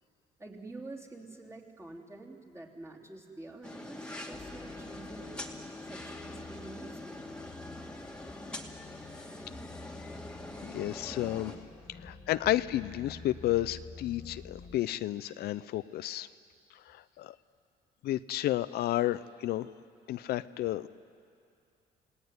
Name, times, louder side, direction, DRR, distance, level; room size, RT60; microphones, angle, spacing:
voice 1, 0.4-5.3 5.8-7.2, right 2 dB, 15° right, -2 dB, 3.6 m, -47 dB
sound 1, 3.6-11.6, left 1 dB, 5° left, 2.4 m, -44 dB
sound 2, 4.3-14.8, left 4 dB, 30° left, 2.2 m, -50 dB
voice 2, 10.7-11.5 12.0-16.3 16.9-17.3 18.0-19.7 20.1-20.9, left 14 dB, 70° left, 13 dB, 0.6 m, -31 dB
28.5 x 18.5 x 9.6 m, 2.4 s
cardioid pair, 110°, 17 cm